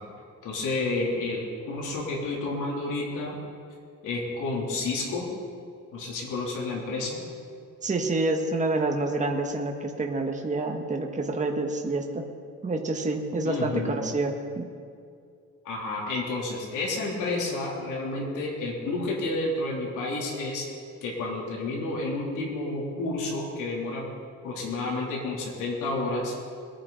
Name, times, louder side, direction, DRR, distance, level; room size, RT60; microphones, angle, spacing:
voice 1, 0.4-3.4 4.0-5.3 5.9-7.2 13.4-14.0 15.7-20.7 21.0-24.1 24.4-26.3, left 2 dB, 85° left, -3 dB, 3.3 m, -30 dB
voice 2, 7.8-12.3 12.6-14.7, right 2 dB, 25° right, 2 dB, 1.5 m, -28 dB
22.0 x 10.0 x 4.1 m, 2.4 s
cardioid pair, 90°, 30 cm